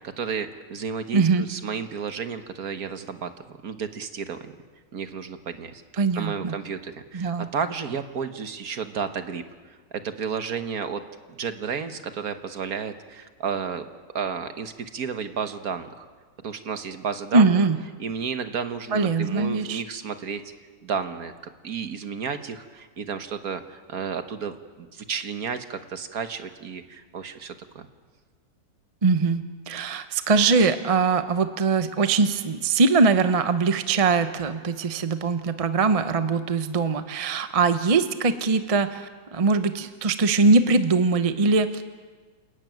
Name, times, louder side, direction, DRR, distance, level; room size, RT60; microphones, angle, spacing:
voice 1, 0.2-4.5 4.9-5.8 6.1-11.0 11.3-13.8 14.1-16.1 16.4-17.6 18.0-20.4 20.8-21.3 21.6-27.9, right 6 dB, 60° right, 8 dB, 1.6 m, -32 dB
voice 2, 1.1-1.5 6.0-6.6 7.1-7.5 17.3-17.8 18.9-19.8 29.0-41.8, right 4 dB, 30° right, 9 dB, 0.6 m, -22 dB
29.0 x 12.0 x 9.2 m, 1.4 s
omnidirectional pair, 1.9 m